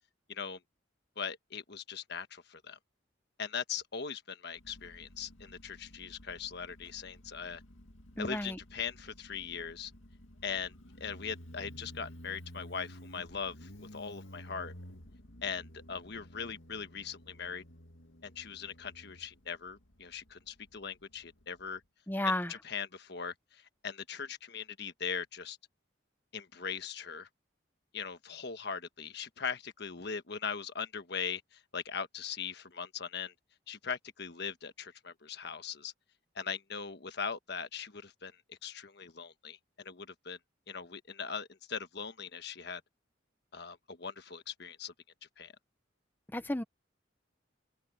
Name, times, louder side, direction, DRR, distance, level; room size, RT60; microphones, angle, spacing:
voice 1, 0.3-0.6 1.2-2.8 3.4-7.6 8.2-9.9 10.4-14.7 15.4-17.6 18.2-21.8 22.2-25.6 26.3-27.3 27.9-33.3 33.7-35.9 36.3-40.4 40.7-42.8 43.5-44.9 45.4-45.5, left 6 dB, 60° left, 1.3 m, -40 dB
Motorcycle, 4.6-21.8, left 1 dB, 85° left, 2.1 m, -53 dB
voice 2, 8.2-8.6 22.1-22.5 46.3-46.6, left 1 dB, 10° left, 0.9 m, -32 dB
open air
head